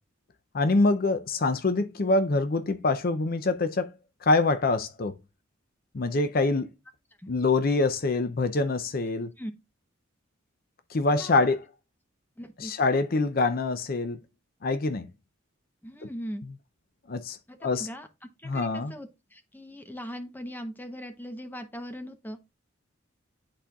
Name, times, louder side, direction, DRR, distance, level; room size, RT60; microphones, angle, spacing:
voice 1, 0.5-3.9 4.2-5.1 5.9-6.7 7.3-9.3 10.9-11.6 12.6-14.2 14.6-15.1 17.1-17.9 18.4-18.9, left 3 dB, 45° left, 0.5 m, -25 dB
voice 2, 12.4-12.7 15.8-16.4 17.5-18.1 18.4-22.4, equal, 10° left, 0.8 m, -40 dB
10.5 x 4.3 x 2.3 m
head